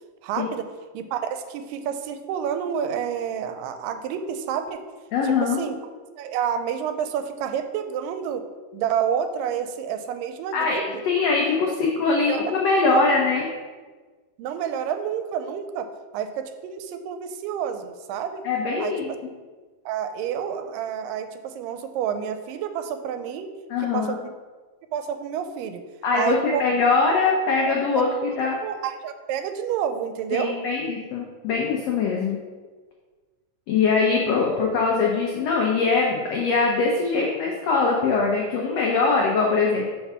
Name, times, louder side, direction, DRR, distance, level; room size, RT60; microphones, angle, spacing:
voice 1, 0.2-0.6 0.9-4.9 5.2-5.8 6.2-8.4 8.7-11.0 12.3-12.6 12.9-13.0 14.4-15.9 16.1-18.4 18.8-18.9 19.9-23.5 23.8-24.3 24.9-25.8 26.1-26.7 27.7-28.0 28.4-30.5, right 8 dB, 90° right, 8 dB, 2.3 m, -29 dB
voice 2, 5.1-5.6 10.5-10.8 11.1-13.5 18.4-19.1 23.7-24.1 26.0-28.6 30.3-32.4 33.7-39.8, left 4 dB, 85° left, -1 dB, 1.4 m, -22 dB
5.9 x 4.6 x 5.4 m, 1.4 s
omnidirectional pair, 3.9 m